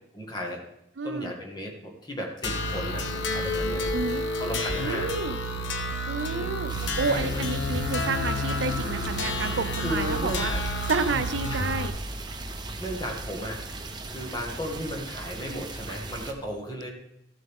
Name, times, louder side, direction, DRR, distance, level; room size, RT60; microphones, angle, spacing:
voice 1, 0.1-0.6 1.0-3.9 4.4-5.1 6.3-6.5 6.9-7.4 9.8-10.6 11.5-11.6 12.8-13.6 14.1-16.9, equal, 20° left, 0 dB, 1.8 m, -35 dB
voice 2, 1.0-1.3 3.9-4.2 4.8-5.4 6.1-10.5 10.9-11.9, right 4 dB, 85° right, 10 dB, 0.6 m, -30 dB
sound 1, 2.4-11.9, left 1 dB, 80° left, 1.0 m, -30 dB
sound 2, 6.7-16.3, right 2 dB, 25° right, 0.9 m, -38 dB
14.0 x 7.7 x 3.7 m, 0.80 s
head